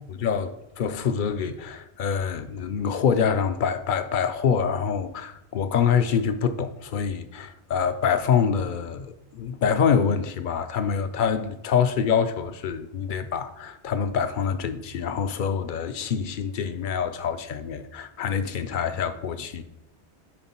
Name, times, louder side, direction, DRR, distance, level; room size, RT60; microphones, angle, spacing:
voice 1, 0.1-19.6, left 7 dB, 60° left, 0.6 m, -25 dB
9.8 x 3.7 x 4.3 m
omnidirectional pair, 1.1 m